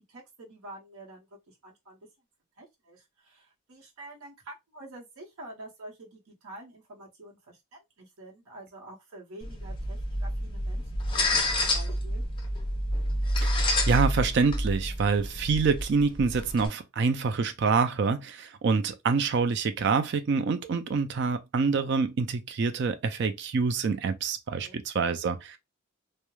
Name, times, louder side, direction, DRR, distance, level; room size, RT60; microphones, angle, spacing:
voice 1, 0.0-2.0 2.6-10.8 11.1-12.2 24.6-24.8, right 1 dB, 80° right, 0.8 m, -48 dB
sound 1, 9.4-16.7, left 1 dB, 20° left, 0.4 m, -29 dB
voice 2, 13.9-25.6, right 5 dB, 50° right, 0.3 m, -26 dB
2.2 x 2.1 x 3.0 m
head